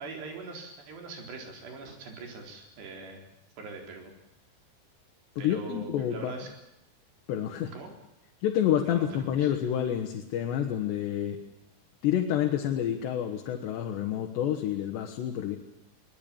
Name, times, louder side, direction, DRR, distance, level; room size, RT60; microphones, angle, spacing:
voice 1, 0.0-3.2 3.6-4.1 5.4-6.5 7.7-7.9 8.9-9.5, right 4 dB, 80° right, 3 dB, 6.2 m, -42 dB
voice 2, 5.4-6.3 7.3-7.7 8.4-11.4 12.0-15.6, left 10 dB, 85° left, 2 dB, 3.7 m, -28 dB
22.0 x 20.5 x 8.8 m, 0.84 s
omnidirectional pair, 4.8 m